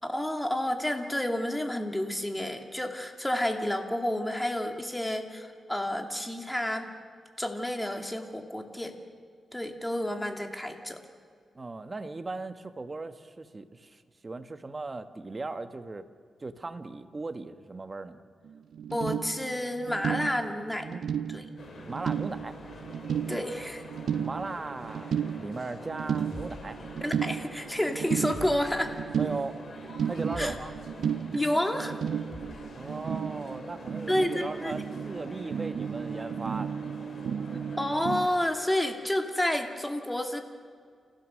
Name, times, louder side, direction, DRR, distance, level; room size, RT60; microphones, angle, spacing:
voice 1, 0.0-6.9 7.4-9.0 9.5-11.0 18.9-20.9 21.3-21.5 23.3-23.8 27.0-28.9 30.4-30.6 31.3-32.0 34.1-34.7 37.8-40.4, left 1 dB, 10° left, 4 dB, 2.4 m, -30 dB
voice 2, 11.5-16.1 16.4-18.2 20.8-21.1 21.5-21.6 21.9-22.6 24.2-26.8 29.1-29.6 30.0-30.7 32.7-36.7, right 3 dB, 30° right, 9 dB, 1.3 m, -38 dB
sound 1, 18.5-18.6 18.7-38.3, right 8 dB, 75° right, 0.6 m, -34 dB
sound 2, 21.6-38.7, left 3 dB, 60° left, 4.4 m, -47 dB
sound 3, 26.3-27.4 28.3-29.2 30.3-31.0 32.3-32.8, left 2 dB, 30° left, 2.7 m, -45 dB
29.5 x 16.0 x 6.4 m, 2.1 s
cardioid pair, 85°, 0 cm